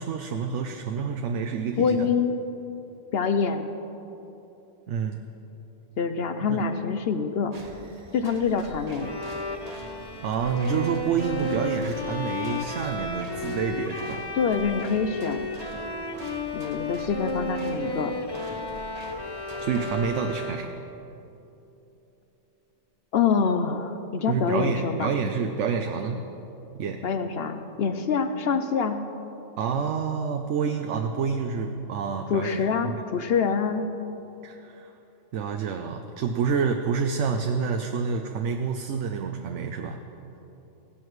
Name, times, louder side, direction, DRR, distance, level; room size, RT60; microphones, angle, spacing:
voice 1, 0.0-2.1 4.9-5.2 6.5-6.6 10.2-14.3 19.6-20.7 24.3-26.2 26.7-27.0 29.6-33.0 34.4-34.9 35.3-40.0, right 6 dB, 75° right, 4 dB, 0.9 m, -28 dB
voice 2, 1.8-2.4 3.1-3.7 6.0-7.5 8.1-9.1 14.3-15.5 16.5-18.2 23.1-25.1 27.0-29.0 32.3-33.8, left 6 dB, 60° left, 8 dB, 0.7 m, -25 dB
sound 1, 7.5-20.4, right 2 dB, 35° right, 0.9 m, -45 dB
Bowed string instrument, 9.0-20.9, left 2 dB, 35° left, 0.4 m, -33 dB
16.5 x 12.5 x 3.1 m, 3.0 s
omnidirectional pair, 1.3 m